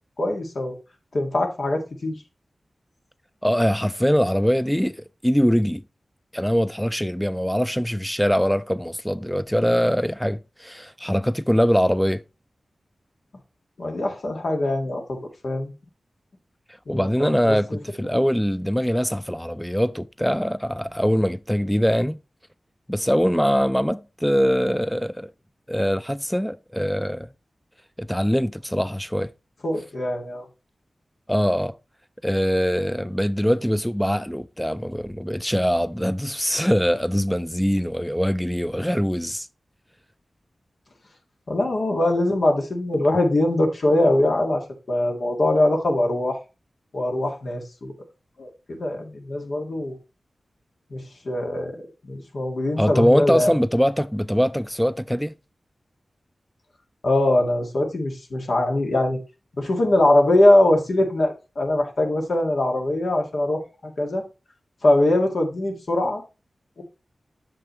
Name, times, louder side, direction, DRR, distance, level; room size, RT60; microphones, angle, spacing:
voice 1, 0.2-0.8 1.1-2.2 13.8-15.7 16.9-17.8 18.1-18.2 29.6-30.5 41.5-46.4 46.9-47.9 48.4-50.0 50.9-51.8 52.0-53.5 57.0-59.2 59.6-64.2 64.8-66.2 66.8-66.9, left 1 dB, 70° left, 1.8 m, -22 dB
voice 2, 3.4-5.8 6.3-12.2 16.9-22.2 22.9-25.3 25.7-27.3 28.0-29.3 31.3-31.7 32.2-39.5 52.8-55.3, equal, 5° left, 0.3 m, -22 dB
7.7 x 6.3 x 3.0 m
cardioid pair, 40°, 0 cm